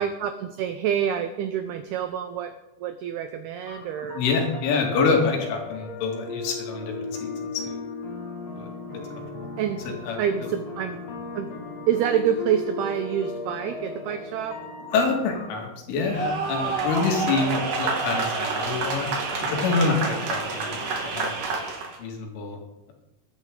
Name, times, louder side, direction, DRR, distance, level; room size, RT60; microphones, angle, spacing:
voice 1, 0.0-2.5 2.8-4.2 9.6-9.8 10.2-11.0 11.3-11.5 11.9-14.6 19.8-20.1, right 9 dB, 90° right, 8 dB, 2.2 m, -27 dB
sound 1, 3.7-15.5, left 3 dB, 50° left, 2.1 m, -37 dB
voice 2, 4.1-7.8 8.6-8.7 10.0-10.2 14.9-19.1 19.4-21.3 22.0-22.6, left 4 dB, 85° left, 1 dB, 4.8 m, -26 dB
sound 2, 16.0-22.0, right 3 dB, 50° right, 3.4 m, -28 dB
21.5 x 10.5 x 3.8 m, 0.95 s
omnidirectional pair, 5.5 m